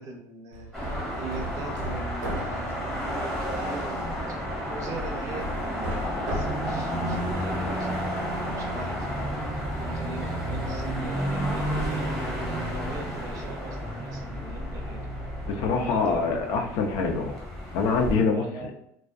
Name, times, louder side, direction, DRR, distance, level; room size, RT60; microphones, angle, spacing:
voice 1, 0.0-12.4 12.7-15.0 15.6-16.8 18.3-18.7, right 3 dB, 45° right, 2 dB, 0.6 m, -41 dB
Hammer, 0.5-8.3, right 1 dB, 90° right, 0.7 m, -38 dB
sound 1, 0.7-18.1, equal, ahead, 0.8 m, -31 dB
voice 2, 15.4-17.4 17.7-18.7, left 4 dB, 60° left, 3 dB, 0.4 m, -25 dB
2.3 x 2.2 x 2.4 m, 0.74 s
cardioid pair, 140°, 8 cm